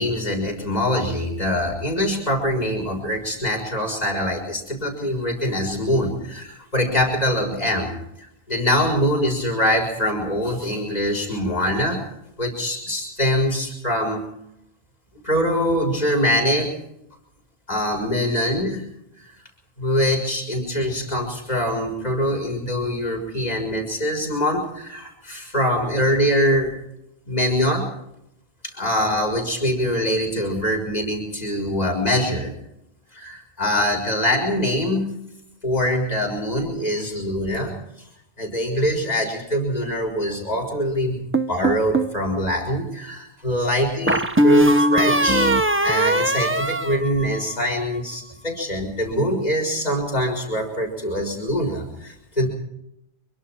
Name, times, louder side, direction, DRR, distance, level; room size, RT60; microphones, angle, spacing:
voice 1, 0.0-12.0 12.4-14.2 15.2-16.7 17.7-18.9 19.2-19.3 19.8-26.7 27.3-27.9 28.6-32.5 33.1-35.1 35.6-37.7 38.4-41.2 41.5-45.5 45.8-52.5, equal, 40° left, 1 dB, 6.4 m, -23 dB
sound 1, 41.3-42.2 44.1-47.7, right 1 dB, 15° right, 0.8 m, -19 dB
26.0 x 24.0 x 4.6 m, 0.80 s
omnidirectional pair, 1.1 m